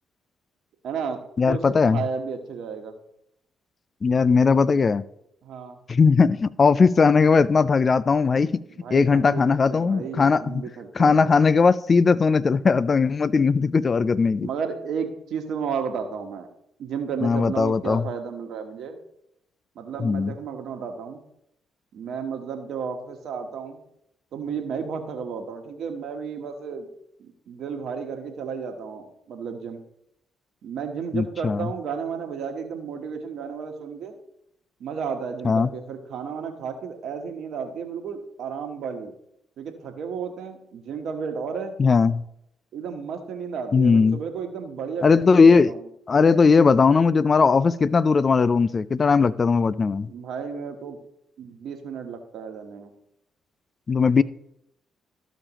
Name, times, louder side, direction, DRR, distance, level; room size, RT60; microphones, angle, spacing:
voice 1, 0.8-1.2 1.5-2.9 5.4-5.8 8.7-11.3 14.4-16.5 16.8-19.0 19.7-21.2 21.9-23.8 24.3-26.9 27.2-29.8 30.6-34.2 34.8-39.1 39.6-41.7 42.7-45.8 50.0-51.0 51.4-52.9, right 6 dB, 70° right, 1.2 m, -33 dB
voice 2, 1.4-2.0 4.0-5.0 5.9-8.6 8.9-10.6 11.0-14.5 17.2-18.0 20.0-20.3 31.1-31.7 35.4-35.7 41.8-42.2 43.7-44.2 45.0-45.7 46.1-50.1 53.9-54.2, left 5 dB, 45° left, 0.4 m, -19 dB
14.0 x 5.0 x 3.0 m
hypercardioid pair, 45°, 0 cm